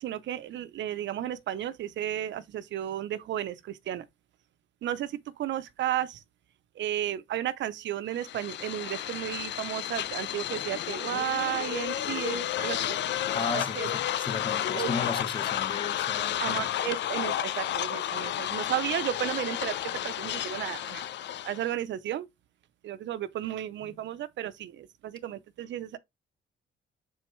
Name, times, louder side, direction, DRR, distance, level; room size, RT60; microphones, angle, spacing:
voice 1, 0.0-4.0 4.8-6.2 6.8-13.0 13.5-13.9 14.7-14.9 16.4-21.1 21.4-22.3 22.8-26.0, right 11 dB, 65° right, 0.6 m, -33 dB
sound 1, 8.1-21.7, left 12 dB, 65° left, 0.5 m, -32 dB
voice 2, 13.3-16.7 23.8-24.0, left 4 dB, 25° left, 1.1 m, -35 dB
6.9 x 4.6 x 3.1 m
cardioid pair, 90°, 20 cm